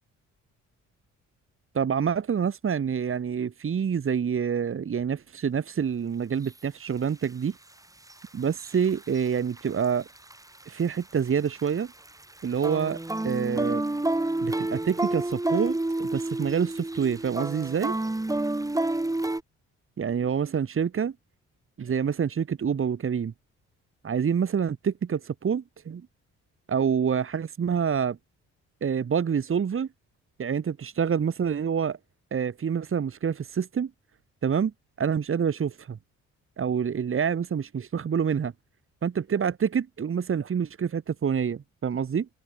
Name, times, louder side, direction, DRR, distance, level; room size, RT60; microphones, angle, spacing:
voice 1, 1.7-7.5 8.3-10.1 10.7-11.9 12.4-13.8 14.4-18.0 20.0-21.1 21.8-23.3 24.0-26.1 26.7-28.2 28.8-29.9 30.4-32.0 32.3-33.9 34.4-36.0 36.6-38.5 39.0-42.3, right 7 dB, 45° right, 2.6 m, -27 dB
sound 1, 6.4-6.5 7.2-7.3 8.1-9.3 9.6-9.9 10.2-11.7 12.1-19.4, right 2 dB, 10° right, 3.0 m, -29 dB
cardioid pair, 90°, 30 cm